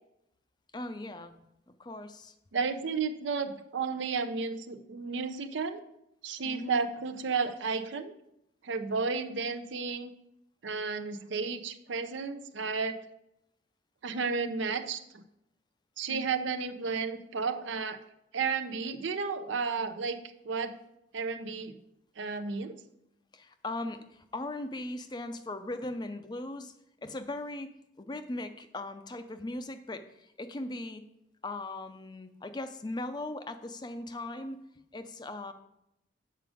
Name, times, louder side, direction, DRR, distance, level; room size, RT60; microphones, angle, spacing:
voice 1, 0.7-1.5 1.8-2.3 6.4-6.8 8.8-9.0 16.1-16.3 23.3-26.7 27.0-27.7 28.0-31.0 31.4-34.6 34.9-35.5, left 2 dB, 20° left, 9 dB, 0.4 m, -39 dB
voice 2, 2.5-5.8 6.2-8.1 8.6-10.1 10.6-13.0 14.0-15.2 16.0-18.0 18.3-20.7 21.1-21.8 22.2-22.8, right 5 dB, 75° right, 9 dB, 0.5 m, -32 dB
7.6 x 5.0 x 4.9 m, 0.81 s
head